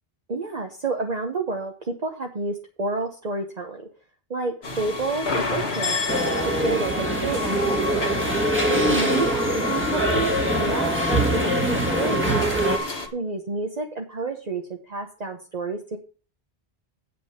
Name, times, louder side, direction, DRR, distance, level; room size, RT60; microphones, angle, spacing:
voice 1, 0.3-3.9 4.3-6.0 6.4-8.1 8.7-12.7 13.1-16.0, right 3 dB, 45° right, 2 dB, 1.2 m, -30 dB
sound 1, 4.6-13.1, left 4 dB, 85° left, 1.9 m, -30 dB
sound 2, 6.1-12.8, right 1 dB, 10° right, 1.5 m, -23 dB
8.5 x 5.9 x 7.1 m, 0.38 s
omnidirectional pair, 1.0 m